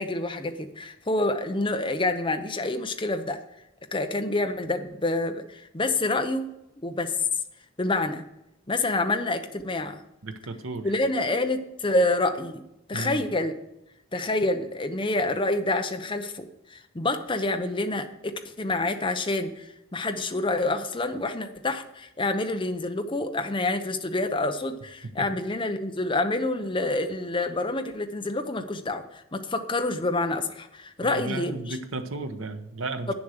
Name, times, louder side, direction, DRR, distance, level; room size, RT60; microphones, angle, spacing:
voice 1, 0.0-3.4 3.9-6.5 6.8-7.1 7.8-8.2 8.7-10.0 10.8-12.6 12.9-13.5 14.1-31.8 33.1-33.2, left 2 dB, 25° left, 6 dB, 0.8 m, -27 dB
voice 2, 10.2-10.9 12.9-13.3 25.2-25.3 31.0-33.1, right 3 dB, 80° right, 8 dB, 1.0 m, -34 dB
9.3 x 7.1 x 6.5 m, 0.85 s
head